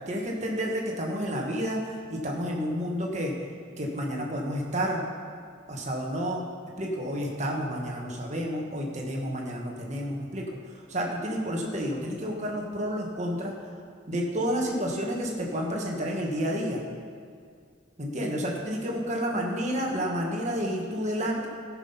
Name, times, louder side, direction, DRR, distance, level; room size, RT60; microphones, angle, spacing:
voice 1, 0.1-3.3 3.8-5.0 5.7-10.5 10.9-13.5 14.1-16.8 18.0-21.5, equal, 35° right, -1 dB, 1.5 m, -30 dB
14.0 x 6.2 x 5.7 m, 2.2 s
head